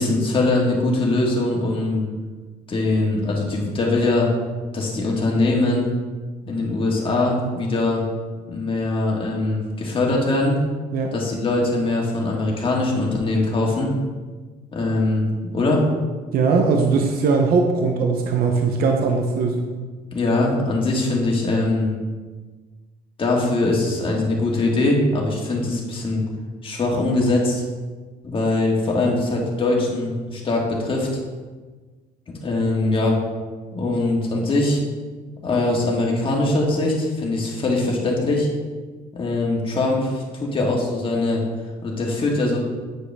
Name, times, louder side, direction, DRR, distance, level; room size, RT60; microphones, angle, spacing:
voice 1, 0.0-2.1 2.7-4.3 4.7-5.9 6.4-8.0 8.5-10.6 11.1-13.9 14.7-15.8 20.1-21.9 23.2-26.2 26.6-27.6 28.2-31.1 32.4-33.2 33.7-34.8 35.4-38.5 39.1-41.4 41.8-42.6, left 2 dB, 30° left, -2 dB, 1.9 m, -22 dB
voice 2, 16.3-19.7, right 4 dB, 65° right, 3 dB, 0.8 m, -20 dB
8.9 x 4.9 x 3.5 m, 1.4 s
cardioid pair, 110°, 17 cm